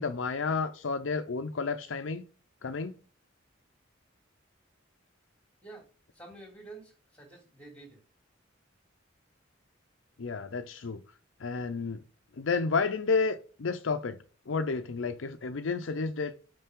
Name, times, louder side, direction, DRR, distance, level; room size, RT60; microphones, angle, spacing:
voice 1, 0.0-2.2 2.6-3.0 10.2-11.0 11.4-12.0 12.4-14.2 14.5-16.3, left 4 dB, 75° left, 0.6 m, -31 dB
voice 2, 6.1-8.0, right 3 dB, 5° left, 2.7 m, -49 dB
5.6 x 5.4 x 3.7 m
head